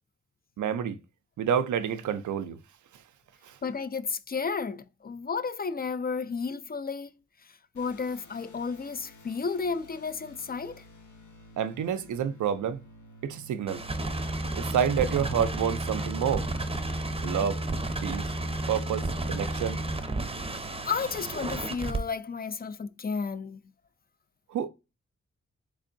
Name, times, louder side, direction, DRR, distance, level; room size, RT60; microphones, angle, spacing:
voice 1, 0.6-1.0 1.4-2.6 3.4-3.6 11.6-12.8 13.2-13.8 14.5-16.5 17.2-17.6 18.0-18.3 18.7-19.8 24.5-24.7, right 8 dB, 75° right, 0.5 m, -28 dB
voice 2, 3.6-7.1 7.4-10.8 20.5-23.6, left 5 dB, 30° left, 0.4 m, -33 dB
sound 1, 7.7-22.1, right 3 dB, 75° left, 0.8 m, -52 dB
sound 2, 13.7-22.0, right 2 dB, 20° right, 0.6 m, -32 dB
3.5 x 3.4 x 2.5 m
cardioid pair, 45°, 30 cm